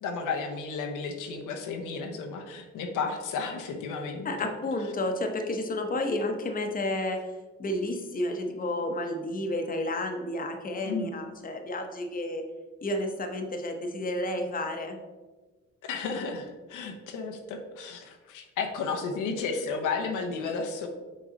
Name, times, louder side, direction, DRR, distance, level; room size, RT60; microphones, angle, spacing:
voice 1, 0.0-4.5 10.8-11.1 15.8-20.9, left 4 dB, 85° left, 3 dB, 0.9 m, -33 dB
voice 2, 4.2-7.2 7.6-12.4 12.8-15.0, left 1 dB, 30° left, 4 dB, 0.9 m, -31 dB
6.6 x 3.9 x 3.8 m, 1.3 s
cardioid pair, 90°, 30 cm